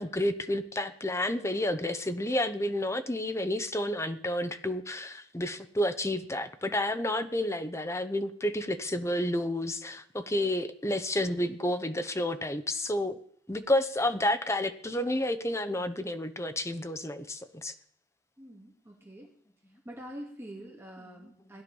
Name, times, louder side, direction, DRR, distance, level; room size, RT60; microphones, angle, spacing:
voice 1, 0.0-13.2 13.5-17.7, left 1 dB, 15° left, 9 dB, 0.9 m, -30 dB
voice 2, 18.4-19.4 19.8-21.6, equal, 15° right, -1 dB, 2.3 m, -45 dB
17.5 x 11.0 x 5.4 m, 0.64 s
head